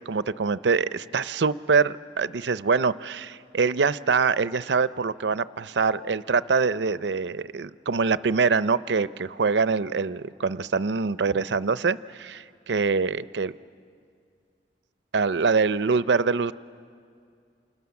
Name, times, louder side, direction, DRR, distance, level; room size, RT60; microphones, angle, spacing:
voice 1, 0.0-13.6 15.1-16.5, right 4 dB, 85° right, 15 dB, 0.6 m, -24 dB
30.0 x 27.5 x 7.1 m, 2.3 s
head